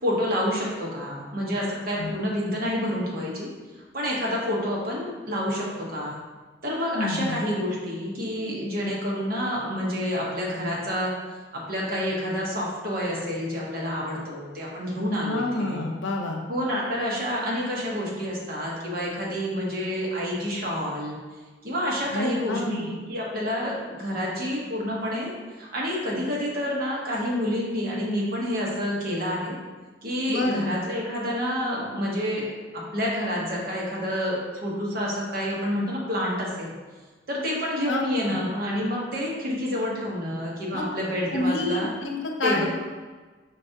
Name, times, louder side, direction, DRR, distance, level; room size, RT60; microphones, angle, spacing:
voice 1, 0.0-3.5 3.9-6.2 6.6-11.1 11.5-15.8 16.5-21.2 21.6-29.6 30.0-36.7 37.3-41.9 42.4-42.6, equal, 55° right, -4 dB, 1.1 m, -28 dB
voice 2, 6.9-7.4 15.2-16.4 22.1-22.9 30.3-30.7 37.8-38.4 40.7-40.8 41.3-42.6, left 2 dB, 85° left, 2 dB, 0.6 m, -28 dB
5.2 x 3.3 x 2.8 m, 1.3 s
head